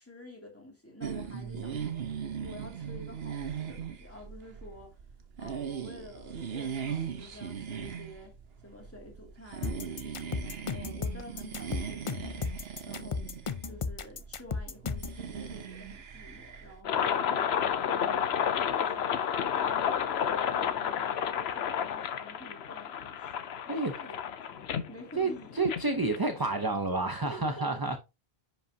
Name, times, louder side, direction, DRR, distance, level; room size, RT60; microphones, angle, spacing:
voice 1, 0.0-2.1 2.4-5.0 5.4-8.3 8.6-12.5 12.8-13.3 13.6-18.4 18.8-24.2 24.5-25.6 27.3-28.0, left 1 dB, 15° left, 2.6 m, -49 dB
sound 1, 1.0-16.8, right 7 dB, 75° right, 1.2 m, -39 dB
voice 2, 1.3-1.7 23.7-23.9 25.2-28.0, right 3 dB, 25° right, 0.7 m, -30 dB
sound 2, 9.6-15.2, left 5 dB, 40° left, 0.5 m, -35 dB
sound 3, 16.8-26.6, left 8 dB, 90° left, 1.0 m, -31 dB
10.5 x 5.3 x 2.8 m
omnidirectional pair, 1.0 m